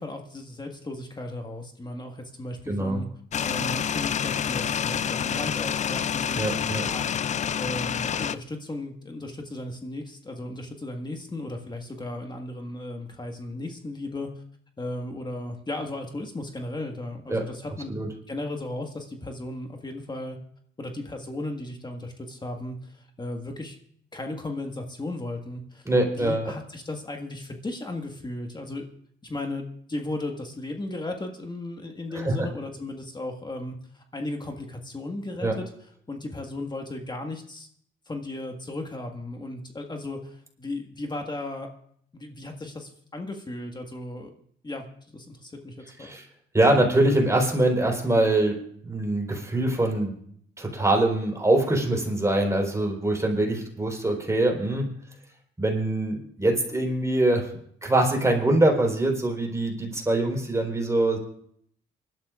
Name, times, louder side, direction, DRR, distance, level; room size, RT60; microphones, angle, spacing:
voice 1, 0.0-3.1 3.4-14.3 14.8-17.9 18.3-20.4 20.8-23.8 24.1-28.8 29.2-35.7 36.1-37.7 38.1-41.7 42.1-44.3 44.6-46.1, left 2 dB, 20° left, 3 dB, 1.6 m, -35 dB
voice 2, 2.7-3.0 6.4-6.9 17.3-17.4 17.9-18.1 25.9-26.5 32.1-32.5 35.4-35.5 46.0-46.2 46.5-50.2 50.6-54.9 55.6-57.5 57.8-61.2, right 1 dB, 15° right, 1 dB, 4.2 m, -23 dB
sound 1, 3.3-8.4, left 8 dB, 35° left, 0.4 m, -28 dB
25.0 x 12.0 x 2.5 m, 0.64 s
cardioid pair, 90°, 20 cm